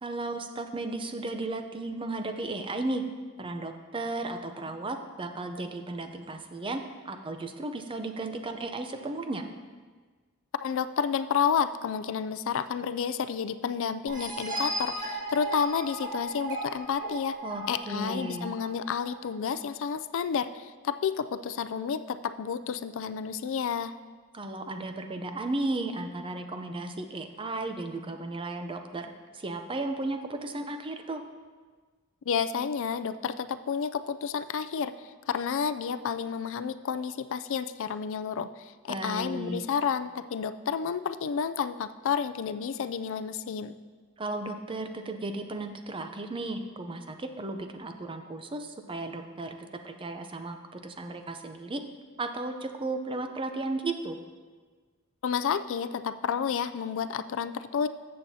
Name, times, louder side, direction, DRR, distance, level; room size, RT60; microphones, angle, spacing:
voice 1, 0.0-3.0 3.4-9.4 17.4-18.5 24.3-31.2 38.9-39.6 44.2-51.8 52.2-54.2, right 2 dB, 25° right, 7 dB, 0.6 m, -35 dB
voice 2, 10.6-17.4 17.7-23.9 32.3-43.8 55.2-57.9, left 7 dB, 60° left, 12 dB, 0.4 m, -30 dB
sound 1, 14.1-19.5, right 1 dB, 40° right, 1.7 m, -36 dB
14.0 x 7.6 x 2.8 m, 1.4 s
head